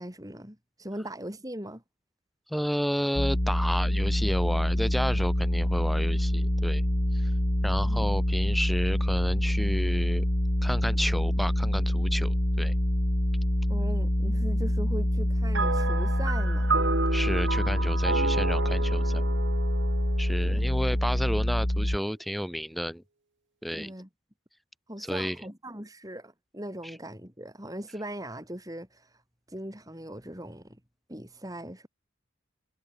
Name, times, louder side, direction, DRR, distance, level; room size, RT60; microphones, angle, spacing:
voice 1, 0.0-1.8 7.7-8.0 13.7-16.7 20.4-20.7 23.7-24.1 24.9-29.2 29.5-30.8 31.1-31.9, right 1 dB, 15° right, 4.5 m, -40 dB
voice 2, 2.5-6.8 7.1-7.3 7.6-10.3 10.6-12.7 17.1-19.2 20.2-23.0 23.6-23.9 25.0-25.4 26.8-26.9, equal, ahead, 7.6 m, -31 dB
sound 1, 3.2-22.0, left 1 dB, 40° left, 2.2 m, -26 dB
sound 2, 15.5-21.1, right 3 dB, 60° right, 1.6 m, -31 dB
head